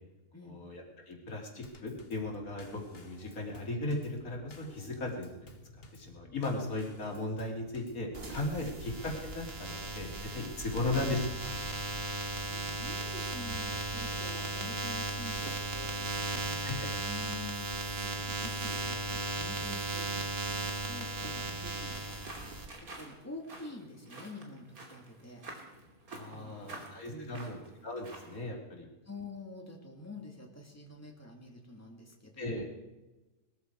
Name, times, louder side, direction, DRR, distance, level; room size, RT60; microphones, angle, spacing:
voice 1, 0.5-5.3 5.9-8.9 9.2-11.5 16.6-16.9 26.1-28.8 32.4-32.6, left 2 dB, 80° left, 0 dB, 3.3 m, -37 dB
Drum kit / Snare drum / Bass drum, 1.6-9.3, left 2 dB, 45° left, 1.6 m, -54 dB
sound 1, 8.1-22.7, right 2 dB, 45° right, 1.9 m, -36 dB
voice 2, 12.5-16.7 17.0-20.2 20.7-22.2 22.8-25.4 26.3-26.8 27.1-27.5 29.0-32.6, left 2 dB, 10° left, 0 dB, 2.5 m, -48 dB
sound 2, 22.0-28.4, right 2 dB, 85° right, 3.3 m, -49 dB
21.0 x 13.5 x 4.7 m, 1.1 s
omnidirectional pair, 1.5 m